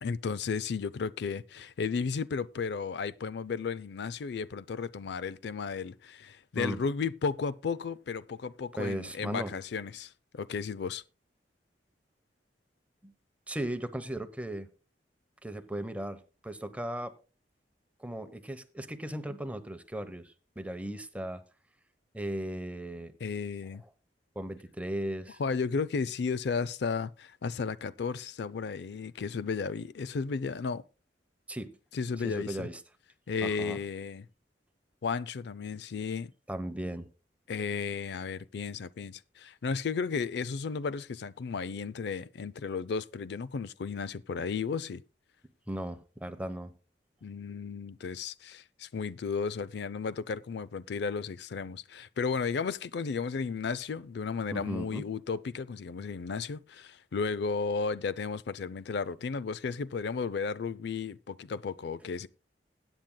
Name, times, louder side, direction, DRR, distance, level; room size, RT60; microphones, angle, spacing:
voice 1, 0.0-11.0 23.2-23.8 25.4-30.8 31.9-32.7 33.3-34.3 35.0-36.3 37.5-45.0 47.2-62.3, left 5 dB, 65° left, 0.4 m, -34 dB
voice 2, 8.8-9.5 13.0-13.1 13.5-14.7 15.4-17.1 18.0-21.4 22.1-23.1 24.3-25.4 31.5-31.7 32.2-32.8 33.4-33.8 36.5-37.1 45.7-46.7 54.5-55.1, right 1 dB, 10° right, 0.9 m, -37 dB
20.5 x 9.0 x 2.2 m
head